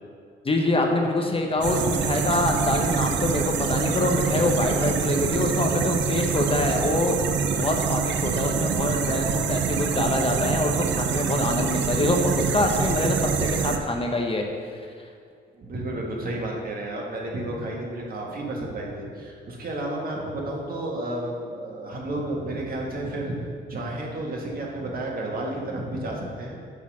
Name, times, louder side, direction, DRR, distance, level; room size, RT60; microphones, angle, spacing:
voice 1, 0.4-7.2 7.6-14.4, left 2 dB, 30° left, 2 dB, 0.9 m, -25 dB
sound 1, 1.6-13.8, right 6 dB, 65° right, 0.7 m, -25 dB
voice 2, 15.6-26.6, right 1 dB, 45° right, -2 dB, 1.7 m, -31 dB
8.4 x 3.9 x 6.3 m, 2.3 s
cardioid pair, 90°, 20 cm